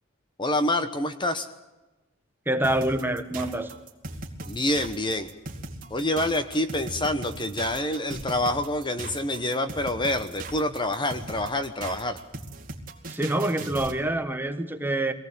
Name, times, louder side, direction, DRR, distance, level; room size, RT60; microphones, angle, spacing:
voice 1, 0.4-1.5 4.5-5.3 5.9-12.2, left 1 dB, 25° left, 10 dB, 1.0 m, -27 dB
voice 2, 2.5-3.7 13.1-15.1, right 1 dB, 10° right, 8 dB, 1.3 m, -26 dB
sound 1, 2.6-14.0, right 2 dB, 45° right, 2.4 m, -38 dB
24.0 x 18.0 x 8.6 m, 1.1 s
head